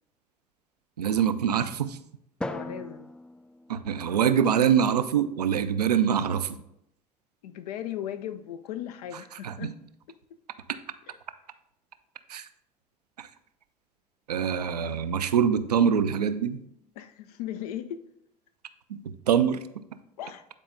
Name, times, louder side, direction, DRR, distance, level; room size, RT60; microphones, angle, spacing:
voice 1, 1.0-2.0 3.7-6.6 9.4-9.7 12.3-12.4 13.2-13.3 14.3-16.6 18.9-19.8, right 8 dB, 90° right, 0.4 m, -24 dB
voice 2, 2.4-3.1 7.4-9.7 11.1-11.2 17.0-18.0 20.2-20.5, left 10 dB, 75° left, 0.5 m, -37 dB
Drum, 2.4-4.7, left 1 dB, 5° left, 0.3 m, -39 dB
9.0 x 4.2 x 3.7 m
figure-of-eight pair, 60°, 20 cm